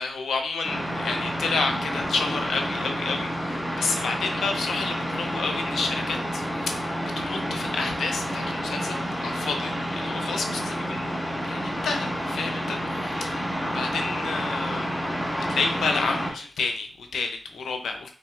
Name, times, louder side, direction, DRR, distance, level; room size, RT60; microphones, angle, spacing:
voice 1, 0.0-6.9 7.2-11.1 11.4-13.4 13.7-15.0 15.5-18.1, left 4 dB, 85° left, 5 dB, 0.6 m, -30 dB
sound 1, 0.6-16.3, equal, 10° left, 1.4 m, -29 dB
4.0 x 3.5 x 2.4 m, 0.40 s
cardioid pair, 40°, 0 cm